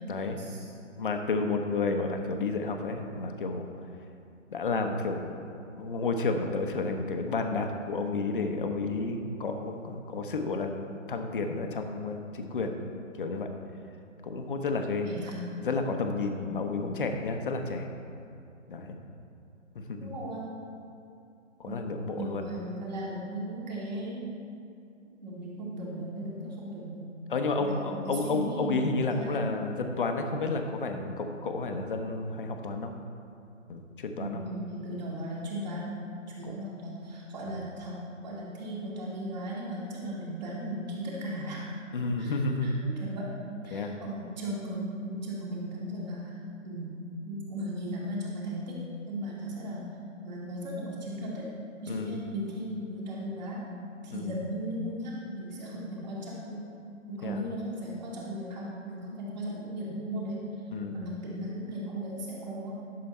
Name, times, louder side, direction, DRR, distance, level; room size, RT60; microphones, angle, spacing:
voice 1, 0.1-0.4 1.0-3.7 4.5-5.5 5.8-10.7 11.1-12.8 13.2-13.5 14.2-15.1 15.6-17.9 18.7-19.0 19.7-20.1 21.6-22.5 27.3-32.9 33.7-34.4 36.4-36.6 37.5-37.7 41.9-42.8 43.7-43.9 51.9-52.2 54.1-54.3 57.2-57.4 60.7-61.0, left 3 dB, 40° left, 4 dB, 0.9 m, -31 dB
voice 2, 20.0-20.5 21.7-21.8 22.1-24.3 25.2-27.1 27.7-29.3 34.2-35.9 36.3-41.6 42.2-42.3 42.6-43.3 43.6-46.3 46.6-46.9 47.3-49.9 50.2-51.5 51.8-53.6 54.0-56.6 57.1-60.4 60.9-62.8, equal, 35° right, -4 dB, 2.2 m, -37 dB
11.5 x 6.8 x 4.3 m, 2.5 s
hypercardioid pair, 160°, 39 cm